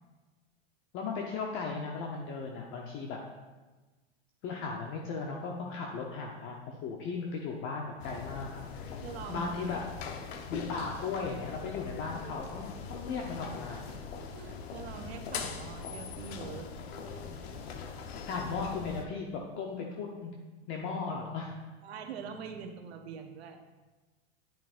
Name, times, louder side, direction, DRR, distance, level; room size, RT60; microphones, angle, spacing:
voice 1, 0.9-3.2 4.4-8.6 9.3-9.8 10.5-13.9 18.3-20.3 20.7-21.5, left 4 dB, 40° left, 0 dB, 0.9 m, -36 dB
sound 1, 8.0-19.0, left 5 dB, 75° left, 0.9 m, -41 dB
voice 2, 9.0-9.5 14.3-16.7 21.8-23.6, right 6 dB, 80° right, 5 dB, 1.0 m, -43 dB
10.0 x 5.5 x 2.5 m, 1.2 s
supercardioid pair, 125°, 32 cm